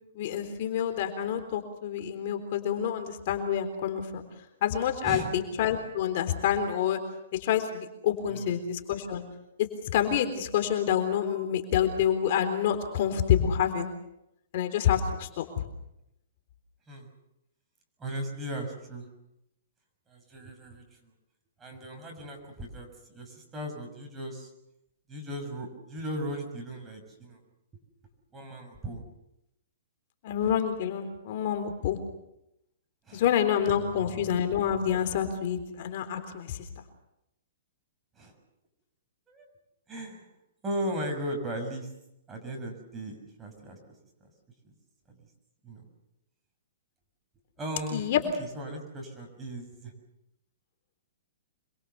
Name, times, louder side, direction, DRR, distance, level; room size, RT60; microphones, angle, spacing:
voice 1, 0.2-4.2 4.6-7.0 7.3-9.2 9.6-13.9 14.5-15.6 30.2-32.0 33.1-36.6 47.9-48.2, left 9 dB, 50° left, 7 dB, 3.7 m, -27 dB
voice 2, 8.3-8.6 16.9-17.1 18.0-19.1 20.1-21.1 21.6-24.5 25.1-27.4 28.3-29.0 33.0-33.2 33.8-34.4 38.2-38.3 39.3-39.5 39.9-40.3 40.6-41.9 42.3-43.9 44.2-44.3 44.6-44.7 45.1-45.2 45.6-45.9 47.6-48.1 48.4-49.9, right 1 dB, 15° right, 2 dB, 6.3 m, -37 dB
27.0 x 22.5 x 6.9 m, 0.85 s
hypercardioid pair, 155°, 0 cm